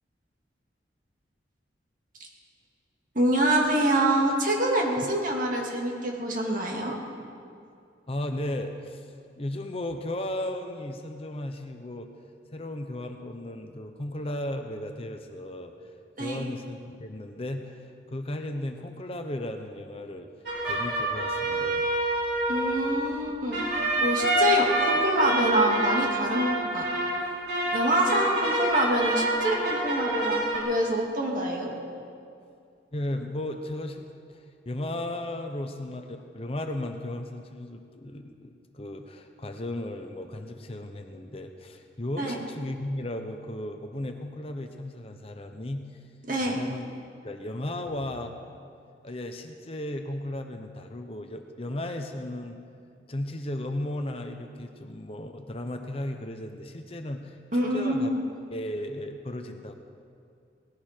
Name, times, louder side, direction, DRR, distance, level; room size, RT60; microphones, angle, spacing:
voice 1, 3.1-7.0 16.2-16.4 22.5-23.6 24.0-26.9 27.1-27.3 27.7-31.7 42.2-42.4 46.3-46.6 57.5-58.2, right 1 dB, 45° right, 0 dB, 2.4 m, -26 dB
voice 2, 8.1-9.1 9.4-12.1 12.5-15.7 16.2-20.3 20.7-21.9 32.9-45.8 46.4-46.8 47.2-48.3 49.0-52.6 53.1-58.1 58.5-59.7, left 1 dB, 30° left, 5 dB, 0.8 m, -35 dB
sound 1, 20.5-30.6, right 1 dB, 70° right, 4.5 m, -27 dB
19.0 x 16.0 x 4.5 m, 2.4 s
head